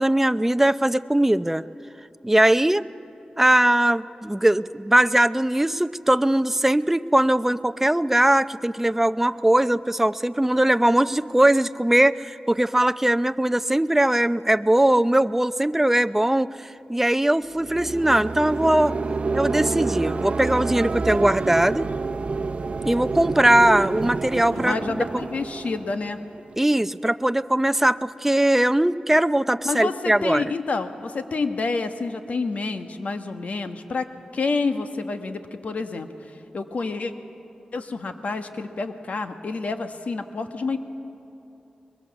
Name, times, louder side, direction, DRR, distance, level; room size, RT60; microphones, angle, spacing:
voice 1, 0.0-1.6 2.2-2.8 3.4-19.0 19.3-21.9 22.8-25.0 26.6-30.4, right 1 dB, 10° right, 13 dB, 0.6 m, -20 dB
sound 1, 17.5-26.6, right 4 dB, 55° right, 0.8 m, -28 dB
voice 2, 24.5-26.2 29.6-34.1 34.3-36.1 36.5-37.1 37.7-40.8, left 3 dB, 70° left, 7 dB, 1.4 m, -28 dB
22.0 x 22.0 x 7.2 m, 3.0 s
cardioid pair, 55°, 3 cm